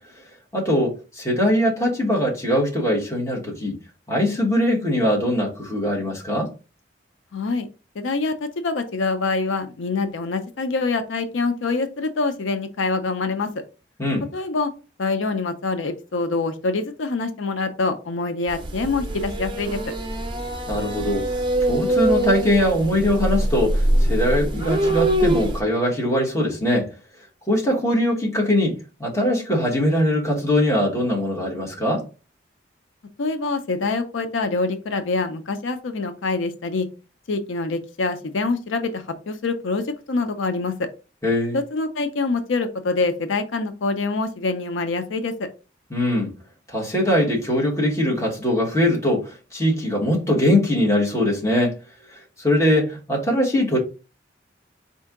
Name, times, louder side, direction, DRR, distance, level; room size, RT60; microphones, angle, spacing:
voice 1, 0.5-3.8 4.1-6.5 14.0-14.3 20.7-21.3 21.7-26.9 27.5-32.0 41.2-41.6 45.9-46.3 46.7-51.7 52.1-53.8, left 1 dB, 15° left, 1.2 m, -21 dB
voice 2, 7.3-7.7 8.0-13.5 14.3-14.7 15.0-19.8 33.2-36.9 37.3-40.9 41.5-45.5, left 3 dB, 85° left, 0.5 m, -25 dB
sound 1, 18.5-25.6, right 1 dB, 25° right, 0.5 m, -23 dB
4.3 x 2.8 x 3.5 m
head